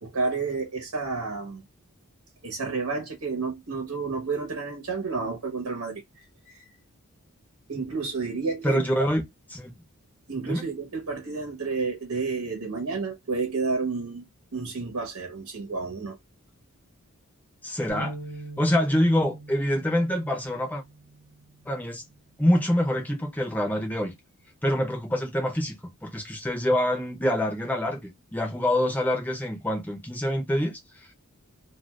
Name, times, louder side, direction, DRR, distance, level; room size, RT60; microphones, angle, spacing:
voice 1, 0.0-1.6 2.4-6.6 7.7-8.8 10.3-14.2 14.5-16.2, right 4 dB, 85° right, 1.0 m, -30 dB
voice 2, 8.6-9.2 9.5-9.7 10.4-10.6 17.6-18.2 18.6-20.8 21.7-22.0 22.4-24.1 24.6-25.8 26.0-31.1, left 1 dB, 5° left, 0.6 m, -25 dB
sound 1, 17.9-22.1 22.6-22.9 23.7-24.1, right 2 dB, 80° left, 0.9 m, -43 dB
2.5 x 2.3 x 3.2 m
head